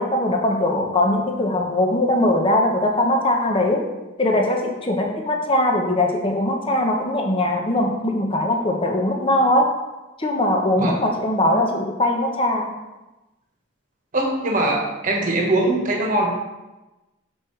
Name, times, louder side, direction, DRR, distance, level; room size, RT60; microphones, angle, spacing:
voice 1, 0.0-3.8 4.2-9.7 10.2-12.7, left 1 dB, 25° left, 2 dB, 0.8 m, -21 dB
voice 2, 14.1-16.3, right 2 dB, 40° right, 0 dB, 1.3 m, -21 dB
6.3 x 6.2 x 3.2 m, 1.0 s
head